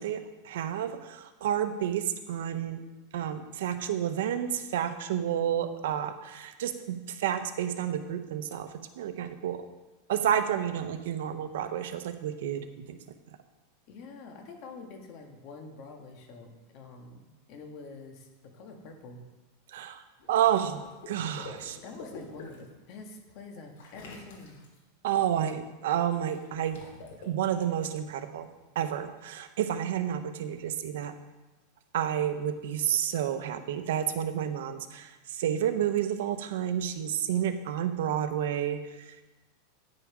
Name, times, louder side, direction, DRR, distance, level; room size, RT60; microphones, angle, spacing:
voice 1, 0.0-2.8 3.1-9.6 10.1-12.6 12.9-13.0 19.7-20.0 20.3-21.8 25.0-26.8 27.2-28.5 28.7-31.1 31.9-39.2, right 10 dB, 75° right, 9 dB, 0.8 m, -30 dB
voice 2, 13.9-19.2 21.8-24.6, left 3 dB, 45° left, 3 dB, 1.7 m, -46 dB
Water / Liquid, 20.2-22.7 23.8-24.8 26.3-27.3, left 3 dB, 70° left, 2.9 m, -47 dB
9.9 x 6.8 x 4.9 m, 1.1 s
supercardioid pair, 150°, 0 cm